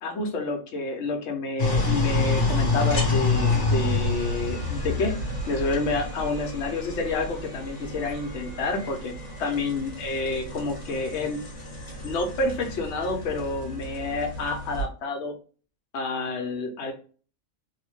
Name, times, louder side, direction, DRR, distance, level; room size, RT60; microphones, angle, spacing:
voice 1, 0.0-5.1 5.5-9.1 9.4-11.4 12.0-15.3 15.9-16.9, left 3 dB, 65° left, 2 dB, 0.9 m, -29 dB
sound 1, 1.6-14.8, left 3 dB, 35° left, 0.8 m, -28 dB
2.9 x 2.1 x 3.0 m, 0.39 s
omnidirectional pair, 1.4 m